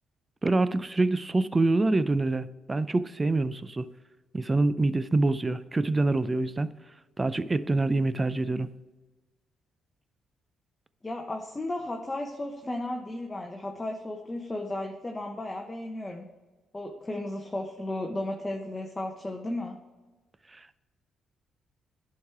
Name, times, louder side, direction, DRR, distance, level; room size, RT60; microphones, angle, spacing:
voice 1, 0.4-3.9 4.3-6.7 7.2-8.7 20.5-20.8, right 2 dB, 25° right, 16 dB, 0.4 m, -26 dB
voice 2, 11.0-16.3 16.7-19.8, left 1 dB, 20° left, 2 dB, 0.9 m, -34 dB
10.5 x 4.8 x 4.5 m, 1.2 s
supercardioid pair, 65°, 0 cm